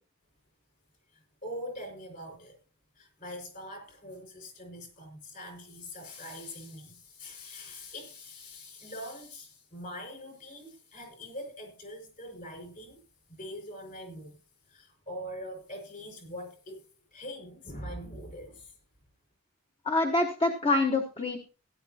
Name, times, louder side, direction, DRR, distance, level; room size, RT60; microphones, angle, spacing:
voice 1, 1.4-2.6 3.0-13.0 13.3-14.4 14.7-16.8 17.1-18.7, equal, 40° left, 5.2 m, -43 dB
voice 2, 19.8-21.4, left 2 dB, 25° left, 1.1 m, -26 dB
17.0 x 11.0 x 2.8 m
head